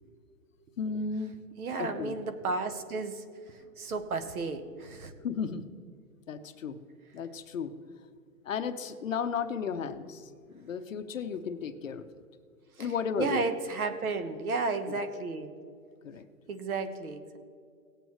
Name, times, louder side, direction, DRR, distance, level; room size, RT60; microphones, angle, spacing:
voice 1, 0.8-1.4 1.8-2.1 5.2-5.6 6.3-6.8 7.1-7.7 8.4-10.3 10.5-12.0 12.8-13.4 14.9-15.0 16.0-16.2, left 6 dB, 55° left, 9 dB, 0.8 m, -34 dB
voice 2, 1.6-3.2 3.8-5.1 9.8-9.9 12.8-15.5 16.5-17.4, right 3 dB, 60° right, 9 dB, 1.2 m, -33 dB
18.0 x 8.0 x 3.1 m, 2.2 s
hypercardioid pair, 170°, 48 cm